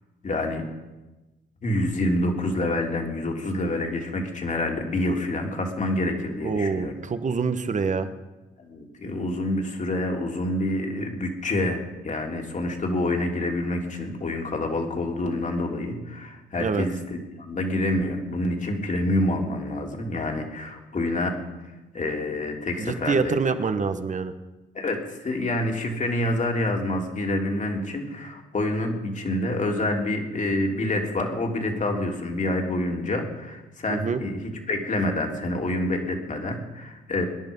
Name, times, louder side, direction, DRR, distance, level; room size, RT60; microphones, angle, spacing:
voice 1, 0.2-0.7 1.6-6.9 8.6-21.3 21.9-23.4 24.7-34.4 34.7-37.3, left 1 dB, 40° left, 2 dB, 3.2 m, -27 dB
voice 2, 6.4-8.1 16.6-16.8 22.8-24.3 33.9-34.2, right 5 dB, 40° right, 10 dB, 1.4 m, -26 dB
24.5 x 11.0 x 5.5 m, 1.1 s
cardioid pair, 90°, 20 cm